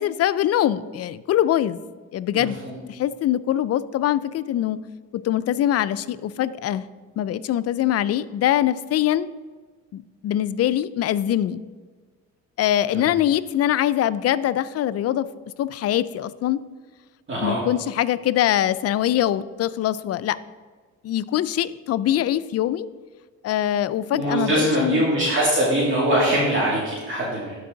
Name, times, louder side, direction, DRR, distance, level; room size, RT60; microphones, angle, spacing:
voice 1, 0.0-1.8 2.1-2.6 2.9-4.8 5.1-6.8 7.2-9.3 9.9-11.6 12.6-15.3 15.6-16.6 17.4-20.4 21.0-22.9 23.4-25.0, left 12 dB, 55° left, 15 dB, 0.4 m, -23 dB
voice 2, 2.3-2.7 12.9-13.1 17.3-17.6 24.1-27.5, right 1 dB, 40° right, -7 dB, 2.3 m, -22 dB
12.0 x 4.7 x 3.8 m, 1.4 s
cardioid pair, 90°, 30 cm